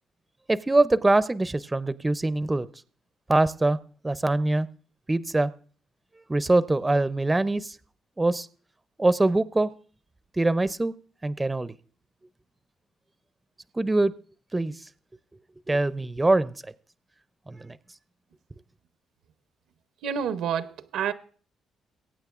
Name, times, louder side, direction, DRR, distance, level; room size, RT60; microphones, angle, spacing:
voice 1, 0.5-2.7 3.3-3.8 4.0-4.7 5.1-5.5 6.3-7.8 8.2-8.5 9.0-9.7 10.4-10.9 11.2-11.7 13.8-14.1 14.5-14.7 15.7-16.5 17.5-17.8, right 2 dB, 15° right, 0.5 m, -23 dB
voice 2, 20.0-21.1, right 8 dB, 85° right, 0.7 m, -28 dB
22.0 x 8.8 x 2.4 m
cardioid pair, 90°, 0 cm